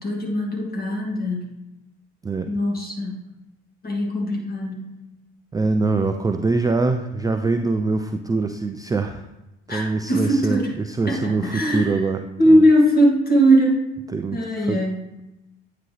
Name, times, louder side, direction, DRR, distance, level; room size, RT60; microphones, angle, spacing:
voice 1, 0.0-1.6 2.5-3.2 3.8-4.8 9.7-10.7 11.1-12.0 12.4-13.8 14.3-15.0, equal, 30° left, -1 dB, 2.2 m, -20 dB
voice 2, 5.5-9.3 9.7-12.2 12.5-12.6 14.1-14.9, right 3 dB, 15° right, 6 dB, 0.4 m, -23 dB
9.1 x 3.8 x 3.3 m, 0.97 s
hypercardioid pair, 55°, 30 cm